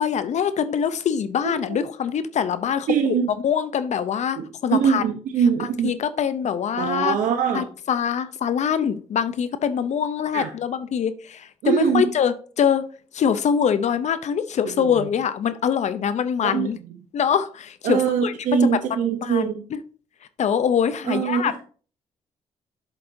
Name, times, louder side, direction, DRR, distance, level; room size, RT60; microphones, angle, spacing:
voice 1, 0.0-2.9 3.4-5.0 5.8-7.2 7.5-12.8 13.1-16.8 17.1-18.3 18.6-18.7 19.2-19.5 20.4-21.6, left 8 dB, 65° left, 0.6 m, -24 dB
voice 2, 1.4-1.8 2.9-3.3 4.3-5.9 6.8-7.7 10.3-10.5 11.6-12.1 14.7-15.1 16.4-16.7 17.8-19.6 21.0-21.6, right 7 dB, 85° right, 0.8 m, -23 dB
7.7 x 7.2 x 2.7 m
supercardioid pair, 55°, 13 cm